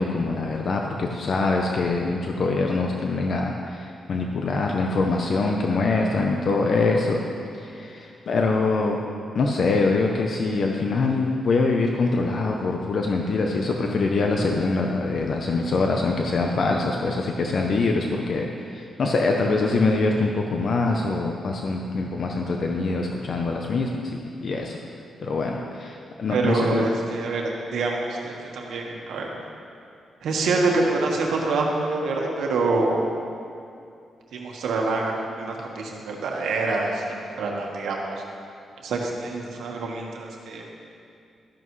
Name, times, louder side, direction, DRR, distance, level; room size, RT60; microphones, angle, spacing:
voice 1, 0.0-7.2 7.5-9.0 9.3-24.8 25.2-26.9, left 3 dB, 45° left, 1 dB, 0.6 m, -24 dB
voice 2, 26.3-29.3 30.2-33.1 34.3-38.2 38.8-40.6, right 3 dB, 80° right, -1 dB, 1.4 m, -26 dB
13.0 x 11.0 x 3.2 m, 2.5 s
wide cardioid pair, 170°, 0 cm